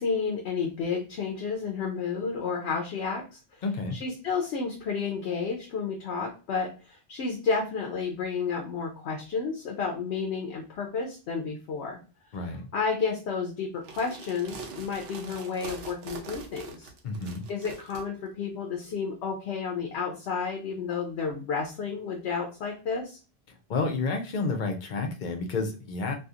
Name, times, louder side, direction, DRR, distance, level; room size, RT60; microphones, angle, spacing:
voice 1, 0.0-3.4 3.9-12.0 12.7-16.9 17.5-23.2, left 5 dB, 85° left, 1 dB, 0.9 m, -31 dB
voice 2, 3.6-4.0 12.3-12.7 17.0-17.5 23.7-26.1, left 3 dB, 55° left, 5 dB, 0.6 m, -30 dB
sound 1, 13.8-18.0, right 4 dB, 75° right, 0.8 m, -43 dB
2.7 x 2.4 x 2.4 m, 0.34 s
omnidirectional pair, 1.1 m